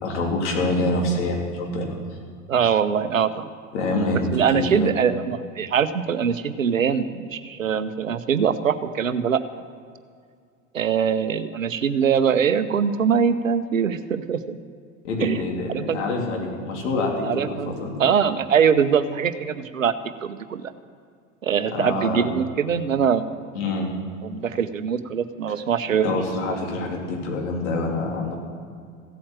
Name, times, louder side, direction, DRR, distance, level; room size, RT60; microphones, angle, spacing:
voice 1, 0.0-2.0 3.7-4.9 15.0-18.0 21.7-22.3 23.6-23.9 26.0-28.4, left 2 dB, 60° left, 0 dB, 3.4 m, -26 dB
voice 2, 2.5-3.5 4.3-9.4 10.7-14.6 15.2-15.4 15.7-16.0 17.2-17.7 18.0-19.9 20.2-20.6 21.4-23.2 24.2-26.1, right 7 dB, 80° right, 12 dB, 0.9 m, -22 dB
15.5 x 8.6 x 7.5 m, 2.2 s
figure-of-eight pair, 80°, 39 cm